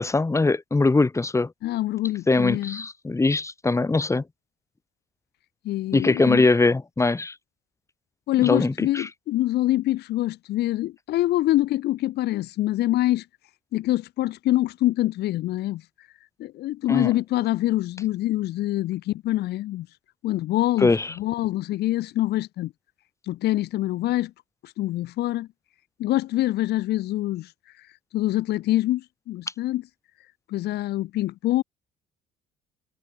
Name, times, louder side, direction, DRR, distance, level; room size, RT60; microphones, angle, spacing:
voice 1, 0.0-1.5 2.3-4.2 5.9-7.3 8.4-9.1 16.9-17.1 20.8-21.1, left 3 dB, 15° left, 5.7 m, -21 dB
voice 2, 1.6-2.8 5.6-6.5 8.3-13.2 13.7-15.8 16.4-19.9 20.2-20.9 21.2-22.7 23.3-24.3 24.6-25.5 26.0-27.5 28.1-29.8 30.5-31.6, left 15 dB, 75° left, 6.1 m, -25 dB
cardioid pair, 110°, 17 cm